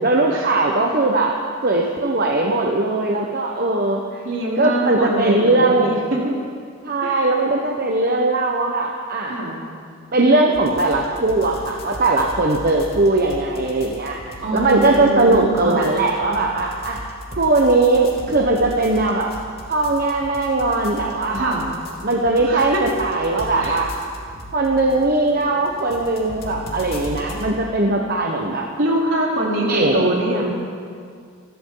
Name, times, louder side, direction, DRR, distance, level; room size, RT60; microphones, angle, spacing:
voice 1, 0.0-1.4 1.6-4.0 4.6-6.0 6.8-9.4 10.1-14.2 14.5-17.0 17.3-19.3 19.7-21.5 22.0-23.9 24.5-28.7 29.7-30.1, right 2 dB, 45° right, 0 dB, 1.1 m, -19 dB
voice 2, 4.2-6.4 7.0-7.3 9.3-9.6 14.4-15.9 21.3-21.7 22.4-22.8 23.6-24.0 28.8-30.5, right 1 dB, 65° right, -4 dB, 3.8 m, -23 dB
sound 1, 10.5-27.5, equal, 50° left, 2.9 m, -37 dB
27.5 x 13.0 x 4.0 m, 2.1 s
head